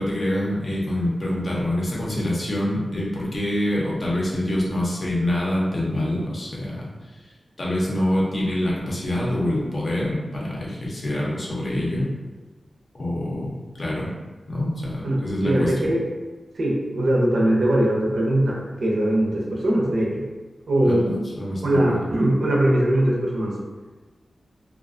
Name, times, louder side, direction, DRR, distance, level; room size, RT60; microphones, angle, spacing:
voice 1, 0.0-7.3 7.6-12.1 12.9-14.1 14.5-15.9 20.8-22.0, left 1 dB, 45° left, -5 dB, 0.6 m, -26 dB
voice 2, 15.0-16.0 16.5-20.2 20.7-21.1 21.6-23.5, right 1 dB, 75° right, -3 dB, 0.5 m, -21 dB
2.4 x 2.1 x 2.4 m, 1.3 s
wide cardioid pair, 130°, 0 cm